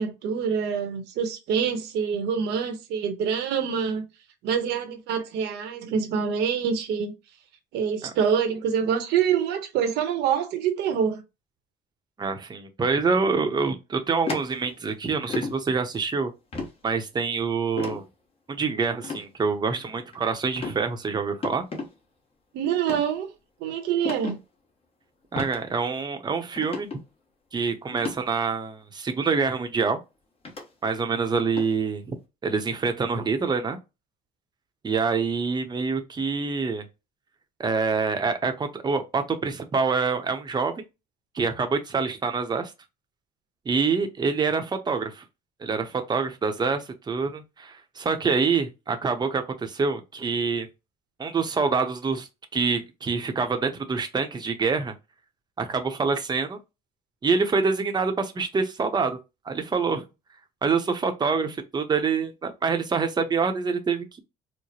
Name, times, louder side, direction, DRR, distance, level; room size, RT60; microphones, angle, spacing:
voice 1, 0.0-4.1 4.4-7.1 7.7-11.2 22.5-23.3 23.6-24.4, right 7 dB, 80° right, 1.0 m, -26 dB
voice 2, 12.2-16.3 16.8-18.0 18.5-21.7 25.3-26.9 27.5-30.0 30.8-32.2 32.4-33.8 34.8-36.8 37.6-40.7 41.3-42.7 43.7-45.2 45.6-50.7 51.2-54.9 55.6-56.6 57.2-59.2 59.5-60.0 60.6-64.2, right 5 dB, 25° right, 0.7 m, -26 dB
sound 1, 14.3-14.9 15.3-15.6 16.5-16.7 17.8-18.0 19.0-19.2 19.8-20.2 20.6-20.8 21.4-21.9 22.8-23.0 24.0-24.3 25.4-25.6 26.0-26.1 26.6-27.0 27.9-28.2 29.2-29.3 30.4-30.6 31.6-31.7, left 3 dB, 35° left, 1.2 m, -32 dB
4.7 x 2.1 x 2.9 m
cardioid pair, 110°, 17 cm